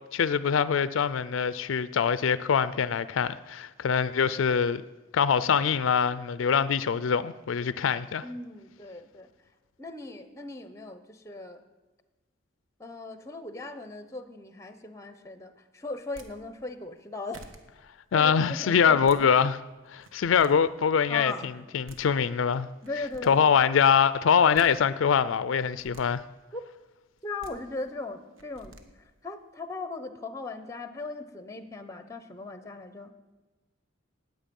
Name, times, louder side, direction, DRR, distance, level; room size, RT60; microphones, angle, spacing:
voice 1, 0.1-4.8 5.1-8.2 18.1-19.6 19.9-22.7 23.3-26.2, left 7 dB, 80° left, 0.4 m, -24 dB
voice 2, 8.2-9.3 9.8-11.6 12.8-17.4 18.1-19.3 21.1-21.5 22.8-23.4 26.5-26.6 27.2-28.8 29.2-33.1, left 3 dB, 15° left, 0.9 m, -38 dB
sound 1, 16.0-16.3 17.0-17.1 17.3-17.6 18.8-19.2 19.9-20.5 21.6-21.7 21.9-22.0 22.8-23.3 24.3-24.7 25.6-26.0 27.2-27.5 28.4-28.8, right 2 dB, 85° right, 1.4 m, -49 dB
19.0 x 7.8 x 5.3 m
head